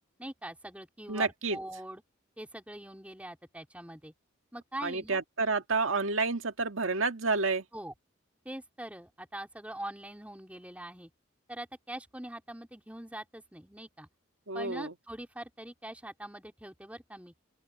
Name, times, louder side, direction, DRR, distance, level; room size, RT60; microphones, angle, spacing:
voice 1, 0.2-2.0 2.4-4.1 4.5-5.2 7.7-7.9 8.4-11.1 11.5-14.1 14.5-17.3, right 1 dB, 5° right, 4.1 m, -43 dB
voice 2, 1.1-1.6 4.8-7.6 14.5-14.9, right 3 dB, 85° right, 1.9 m, -29 dB
open air
head